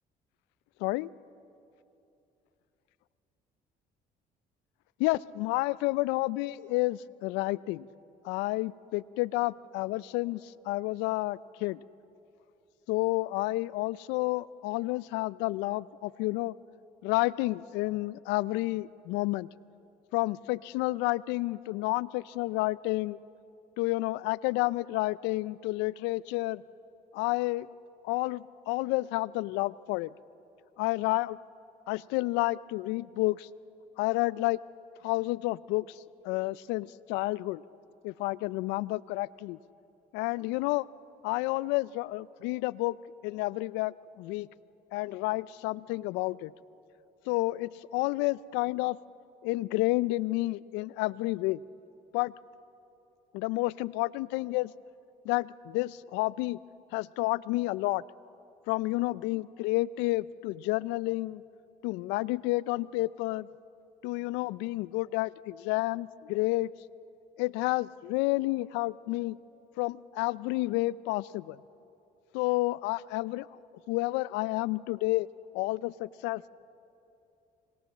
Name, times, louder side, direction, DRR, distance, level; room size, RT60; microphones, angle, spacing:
voice 1, 5.0-7.9 8.2-11.8 12.9-16.5 17.0-19.5 20.1-23.2 23.8-26.6 27.1-27.7 28.0-30.1 30.8-31.4 31.9-33.5 34.0-34.6 35.0-37.6 38.0-39.6 40.1-40.9 41.2-43.0 43.2-44.5 44.9-46.5 47.3-49.0 49.4-51.6 52.1-52.3 53.3-54.7 55.2-56.6 56.9-58.0 58.7-61.4 61.8-63.5 64.0-66.7 67.4-69.4 69.8-71.6 72.3-73.5 73.9-75.3 75.5-76.5, left 20 dB, 85° left, 21 dB, 0.5 m, -30 dB
26.0 x 20.0 x 7.3 m, 2.8 s
supercardioid pair, 70°, 18 cm